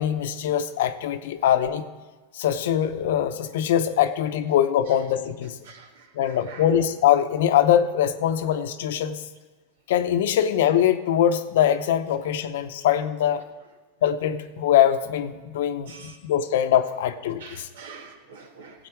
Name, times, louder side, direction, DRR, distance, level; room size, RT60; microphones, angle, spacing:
voice 1, 0.0-1.8 2.3-5.5 6.1-9.2 9.9-13.4 14.0-17.7, left 10 dB, 80° left, 10 dB, 0.7 m, -22 dB
voice 2, 6.2-6.7 15.9-16.1 17.4-18.7, right 5 dB, 85° right, 5 dB, 1.5 m, -44 dB
16.0 x 8.0 x 4.6 m, 1.3 s
supercardioid pair, 130°, 0 cm